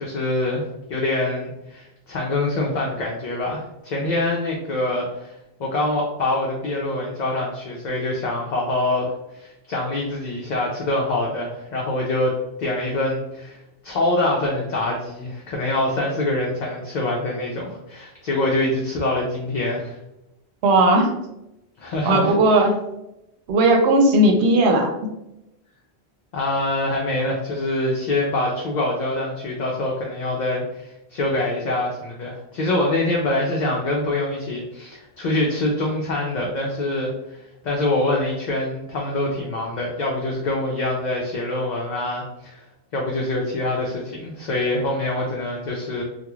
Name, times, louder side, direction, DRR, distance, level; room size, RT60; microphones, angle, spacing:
voice 1, 0.0-5.3 5.6-13.6 13.8-20.0 21.8-22.6 26.3-37.4 37.6-42.6 42.9-46.0, left 2 dB, 55° left, -2 dB, 0.5 m, -25 dB
voice 2, 20.6-21.1 22.1-22.8 23.5-24.9, right 1 dB, 85° right, 3 dB, 0.8 m, -16 dB
2.3 x 2.2 x 3.0 m, 0.88 s
omnidirectional pair, 1.1 m